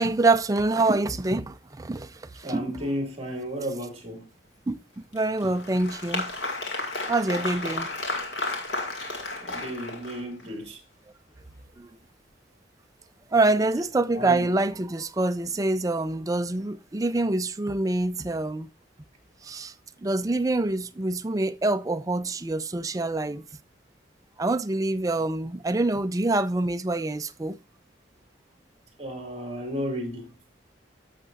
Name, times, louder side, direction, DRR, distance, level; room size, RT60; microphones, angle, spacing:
voice 1, 0.0-2.8 4.7-6.3 7.1-7.9 10.4-10.5 11.8-11.9 13.3-18.7 19.4-19.7 20.0-23.4 24.4-27.6, right 2 dB, 20° right, 0.4 m, -26 dB
voice 2, 2.4-4.3 9.4-10.8 14.1-14.5 29.0-30.3, equal, 35° right, 2.3 m, -33 dB
Applause, 5.1-10.5, left 2 dB, 70° left, 2.3 m, -32 dB
12.0 x 6.6 x 2.5 m
head